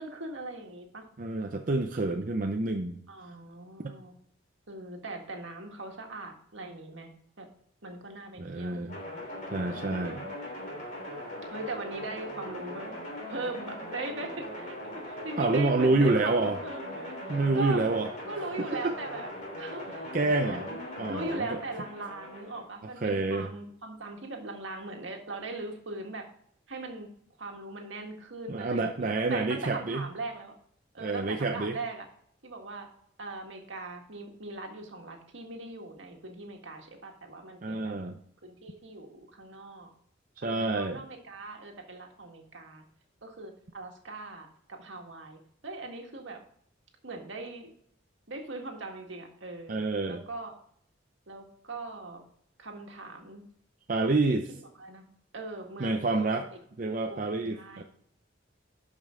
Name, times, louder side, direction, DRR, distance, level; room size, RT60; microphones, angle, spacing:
voice 1, 0.0-1.1 3.1-4.2 4.7-7.1 7.4-7.5 7.8-8.8 9.7-10.3 11.5-12.9 13.3-17.9 18.3-19.3 19.6-20.1 20.4-20.8 21.1-26.3 26.7-27.1 27.4-30.5 30.9-32.1 32.4-32.9 33.2-37.9 38.4-39.9 40.4-42.8 43.2-46.4 47.0-47.7 48.3-49.8 50.1-50.6 51.3-52.2 52.6-53.4 54.8-55.0 55.3-56.4 57.0-57.2 57.5-57.8, right 2 dB, 75° right, 2 dB, 1.8 m, -40 dB
voice 2, 1.2-3.0 3.8-3.9 8.4-9.0 9.5-10.3 15.4-16.6 17.3-18.1 18.8-19.0 20.1-20.7 21.0-21.6 23.0-23.5 28.5-30.1 31.0-31.8 37.6-38.2 40.4-41.0 49.7-50.2 53.9-54.5 55.8-56.5 56.8-57.8, right 3 dB, 45° right, 4 dB, 0.6 m, -28 dB
sound 1, 8.9-22.6, left 1 dB, 40° left, 3.1 m, -40 dB
12.0 x 5.3 x 3.7 m, 0.68 s
head